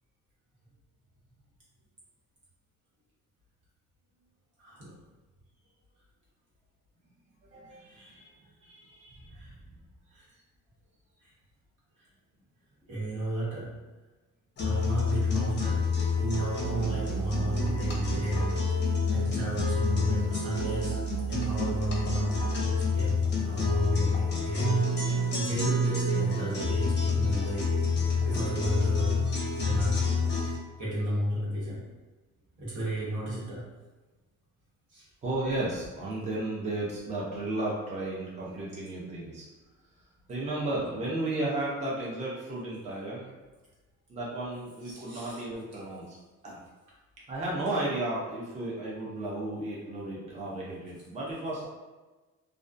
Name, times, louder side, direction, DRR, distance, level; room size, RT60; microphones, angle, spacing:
voice 1, 4.6-5.0 7.8-8.2 9.3-9.5 10.1-10.3 11.2-11.3 12.9-13.8 14.6-22.5 22.8-27.8 28.2-29.2 29.5-30.1 30.8-31.8 32.6-33.7 34.9-35.0 44.8-45.4, equal, 80° right, -7 dB, 1.1 m, -33 dB
voice 2, 7.4-8.3 8.6-9.4 35.2-39.5 40.3-43.3 44.1-46.2 46.4-46.6 47.3-51.7, right 2 dB, 20° right, -5 dB, 0.5 m, -34 dB
sound 1, 14.6-30.6, left 2 dB, 35° left, 0.5 m, -28 dB
2.3 x 2.2 x 2.4 m, 1.2 s
cardioid pair, 140°, 31 cm